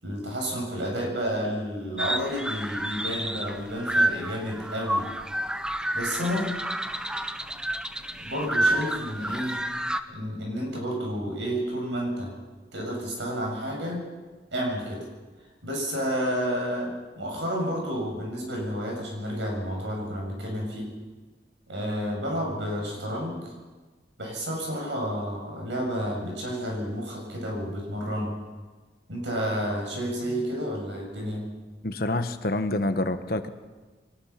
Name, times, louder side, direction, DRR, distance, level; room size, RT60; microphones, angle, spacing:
voice 1, 0.0-5.1 5.9-6.5 8.2-9.6 10.1-12.3 12.7-14.0 14.5-15.1 15.6-20.9 21.7-23.5 24.2-28.4 29.1-31.4, equal, 90° right, 0 dB, 7.5 m, -30 dB
sound 1, 2.0-10.0, right 1 dB, 5° right, 0.6 m, -29 dB
voice 2, 31.8-33.5, left 2 dB, 55° left, 9 dB, 1.2 m, -27 dB
23.5 x 19.5 x 5.9 m, 1.3 s
head